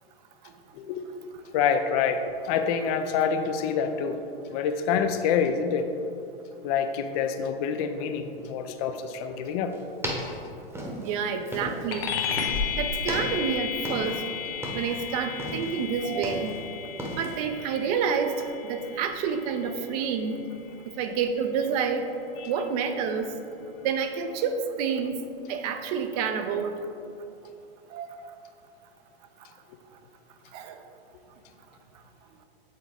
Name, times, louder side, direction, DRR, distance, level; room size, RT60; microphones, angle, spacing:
voice 1, 1.5-4.2 4.5-5.9 6.6-9.7 22.4-22.5, left 6 dB, 40° left, 8 dB, 0.5 m, -27 dB
sound 1, 9.7-12.0 12.3-12.7 13.0-14.3 14.5-15.0 15.4-16.6 17.0-17.4, equal, 10° right, 1.0 m, -35 dB
voice 2, 11.0-12.2 12.7-14.2 14.7-16.5 17.1-18.3 18.6-20.4 20.9-22.0 22.5-23.3 23.8-25.2 25.5-26.8 27.9-28.1 30.5-30.8, right 6 dB, 40° right, 7 dB, 0.6 m, -28 dB
sound 2, 11.9-21.7, left 7 dB, 65° left, 0.9 m, -34 dB
8.4 x 3.8 x 3.5 m, 2.6 s
hypercardioid pair, 120°, 30 cm